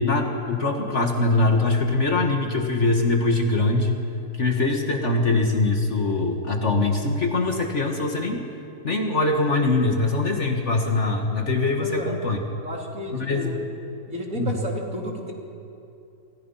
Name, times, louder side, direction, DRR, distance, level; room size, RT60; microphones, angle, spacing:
voice 1, 0.0-4.0 4.4-8.4 8.8-12.4 13.1-13.5 14.4-14.6, left 2 dB, 40° left, 3 dB, 2.1 m, -22 dB
voice 2, 11.8-12.1 12.6-13.6 14.1-15.3, right 1 dB, 50° right, 0 dB, 3.8 m, -32 dB
29.5 x 25.0 x 5.7 m, 2.6 s
omnidirectional pair, 1.9 m